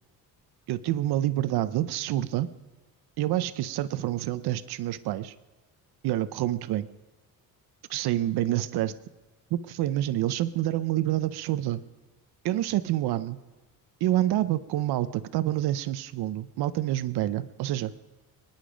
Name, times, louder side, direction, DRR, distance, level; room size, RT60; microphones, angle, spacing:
voice 1, 0.7-2.5 3.2-5.3 6.0-6.9 7.9-8.9 9.5-11.8 12.4-13.4 14.0-17.9, right 13 dB, 80° right, 15 dB, 0.7 m, -27 dB
25.5 x 10.5 x 5.1 m, 1.2 s
cardioid pair, 155°, 38 cm